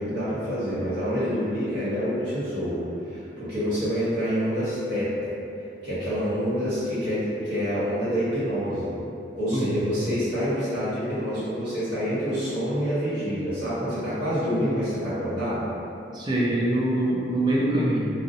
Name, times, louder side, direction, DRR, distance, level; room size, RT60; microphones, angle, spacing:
voice 1, 0.0-5.3 5.8-8.9 9.4-15.7, equal, 85° right, -13 dB, 0.9 m, -27 dB
voice 2, 9.5-9.9 16.1-18.1, right 1 dB, 25° right, -6 dB, 0.3 m, -24 dB
2.5 x 2.0 x 2.6 m, 2.7 s
head